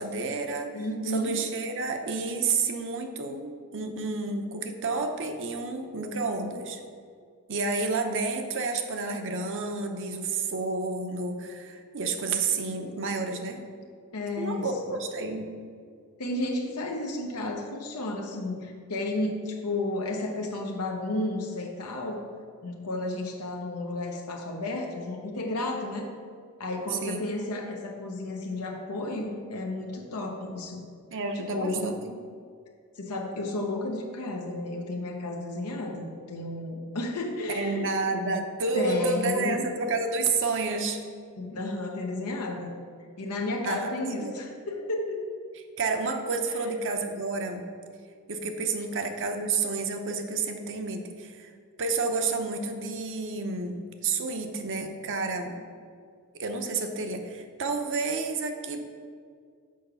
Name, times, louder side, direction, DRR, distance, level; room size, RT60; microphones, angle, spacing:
voice 1, 0.0-6.8 7.5-13.6 14.4-15.5 26.9-27.2 31.1-32.1 37.5-41.0 43.6-43.9 44.2-44.3 45.8-47.7 48.3-51.5 51.8-55.5 56.3-58.8, right 3 dB, 55° right, 5 dB, 0.8 m, -30 dB
voice 2, 0.7-1.4 14.1-15.0 16.2-22.2 22.6-26.1 26.6-30.8 31.1-31.9 33.0-37.9 38.7-39.6 41.4-42.7 43.2-45.2 46.5-46.7, left 2 dB, 85° left, 0 dB, 0.9 m, -32 dB
6.4 x 5.0 x 6.9 m, 2.1 s
head